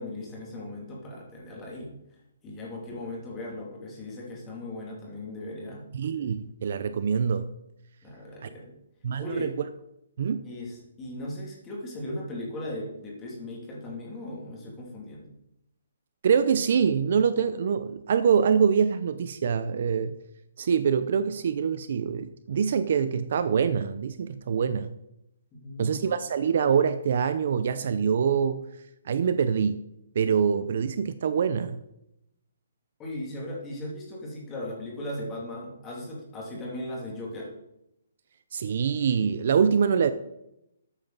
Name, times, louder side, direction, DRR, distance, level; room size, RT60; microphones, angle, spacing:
voice 1, 0.0-1.9 2.4-5.8 8.0-8.7 9.2-9.5 10.4-15.3 25.5-26.0 33.0-37.5, left 1 dB, 15° left, -2 dB, 2.7 m, -37 dB
voice 2, 5.9-7.5 8.4-8.5 9.0-9.5 10.2-10.4 16.2-20.2 20.6-25.0 25.8-28.6 29.0-29.8 30.1-31.8 38.5-40.1, right 7 dB, 45° right, 12 dB, 0.6 m, -25 dB
13.5 x 9.0 x 4.0 m, 0.83 s
hypercardioid pair, 175°, 0 cm